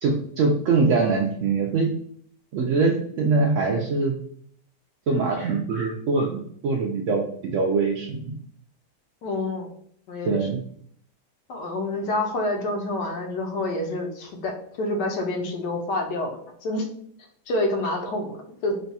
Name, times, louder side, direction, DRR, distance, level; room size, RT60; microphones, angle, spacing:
voice 1, 0.0-1.9 2.5-4.2 5.1-8.3 10.2-10.6, right 4 dB, 85° right, 0 dB, 0.6 m, -23 dB
voice 2, 9.2-9.7 10.1-10.4 11.5-16.9 17.5-18.4 18.6-18.8, left 2 dB, 75° left, 2 dB, 1.3 m, -27 dB
3.3 x 2.3 x 4.0 m, 0.63 s
omnidirectional pair, 1.9 m